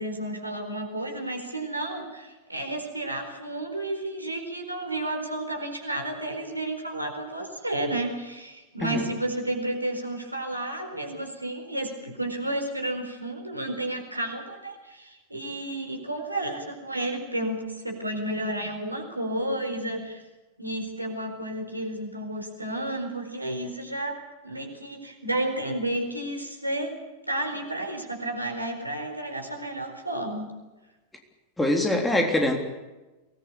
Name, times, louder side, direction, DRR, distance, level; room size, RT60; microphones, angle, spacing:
voice 1, 0.0-20.2 20.6-24.2 24.4-26.9 27.3-30.5, right 1 dB, 85° right, 4 dB, 4.4 m, -32 dB
voice 2, 31.6-32.6, left 1 dB, 5° left, 3 dB, 3.5 m, -23 dB
23.5 x 19.5 x 8.5 m, 1.1 s
figure-of-eight pair, 90°, 0 cm